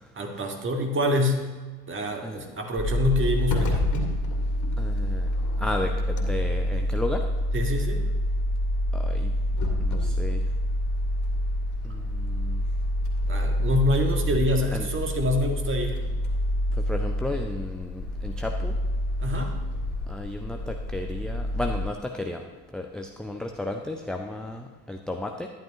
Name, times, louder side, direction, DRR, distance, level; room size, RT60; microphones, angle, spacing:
voice 1, 0.2-1.4 1.9-3.8 7.5-8.0 13.3-16.0 19.2-19.6, left 1 dB, 25° right, 3 dB, 1.7 m, -26 dB
sound 1, 2.8-21.8, left 1 dB, 35° left, 2.3 m, -27 dB
voice 2, 4.8-5.3 5.6-7.2 8.9-9.3 9.8-10.4 11.8-12.6 14.7-14.9 16.8-18.8 20.1-22.4 22.7-25.5, left 2 dB, ahead, 2 dB, 0.4 m, -33 dB
11.5 x 11.0 x 3.0 m, 1.3 s
hypercardioid pair, 70°, 50 cm